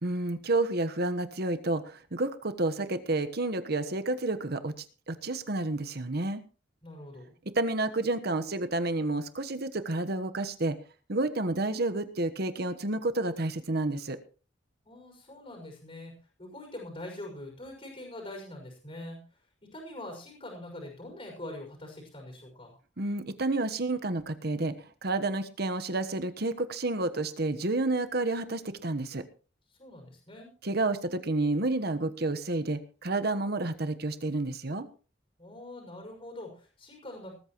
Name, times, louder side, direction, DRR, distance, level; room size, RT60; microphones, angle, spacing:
voice 1, 0.0-6.4 7.5-10.8 11.1-14.2 23.0-24.7 25.0-29.2 30.6-34.9, right 2 dB, 60° right, 10 dB, 1.2 m, -30 dB
voice 2, 6.8-7.3 14.9-19.2 19.6-22.7 29.8-30.5 35.4-37.3, left 1 dB, 35° left, -2 dB, 5.7 m, -44 dB
20.0 x 13.5 x 3.1 m, 0.37 s
head